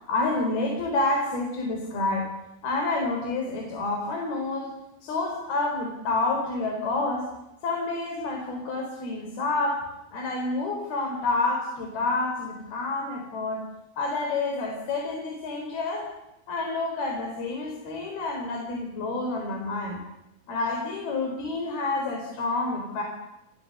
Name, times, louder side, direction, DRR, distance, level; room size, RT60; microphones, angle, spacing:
voice 1, 0.1-2.3 2.6-4.7 5.0-7.3 7.6-9.8 10.1-13.6 14.0-16.1 16.5-20.0 20.5-23.0, left 3 dB, 80° left, 1 dB, 6.1 m, -28 dB
29.5 x 29.0 x 6.7 m, 0.90 s
omnidirectional pair, 4.3 m